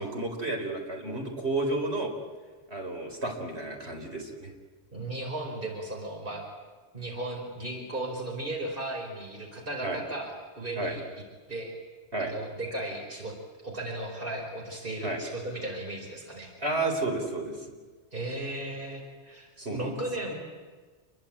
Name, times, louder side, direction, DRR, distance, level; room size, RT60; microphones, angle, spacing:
voice 1, 0.0-2.1 2.7-4.5 9.8-10.0 10.8-10.9 12.1-12.3 15.0-15.2 16.6-17.6 19.6-20.0, right 2 dB, 65° right, 2 dB, 4.5 m, -31 dB
voice 2, 4.9-6.4 6.9-11.0 11.5-11.7 12.2-13.4 13.6-16.5 18.1-20.3, right 1 dB, 50° right, 1 dB, 5.0 m, -36 dB
28.5 x 22.5 x 8.8 m, 1.4 s
omnidirectional pair, 1.2 m